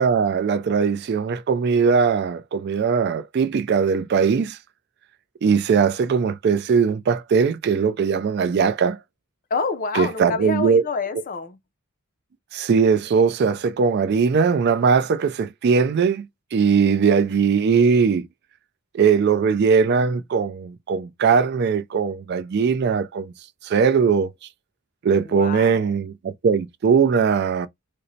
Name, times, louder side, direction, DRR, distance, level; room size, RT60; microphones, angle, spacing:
voice 1, 0.0-4.6 5.4-9.0 9.9-10.8 11.1-11.2 12.5-16.3 16.5-18.3 18.9-23.3 23.6-24.3 25.0-27.7, right 6 dB, 50° right, 0.3 m, -20 dB
voice 2, 9.5-11.6 25.3-25.8, left 4 dB, 40° left, 0.4 m, -28 dB
3.9 x 2.1 x 2.6 m
head